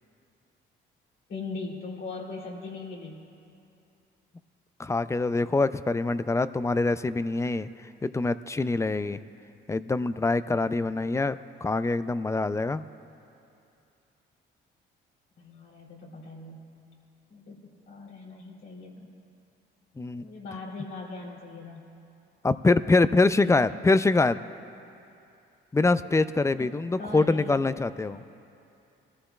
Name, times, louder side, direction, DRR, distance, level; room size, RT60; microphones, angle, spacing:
voice 1, 1.3-3.2 15.4-16.6 17.3-17.6 17.9-19.1 20.2-21.9 23.4-23.8 26.6-26.7 27.0-27.6 28.0-28.2, left 3 dB, 80° left, -4 dB, 3.0 m, -40 dB
voice 2, 4.8-7.7 8.0-9.2 9.7-12.8 20.0-20.3 22.4-24.4 25.7-28.2, left 3 dB, 15° left, 13 dB, 0.4 m, -24 dB
23.5 x 14.5 x 2.3 m, 2.7 s
cardioid pair, 90°, 20 cm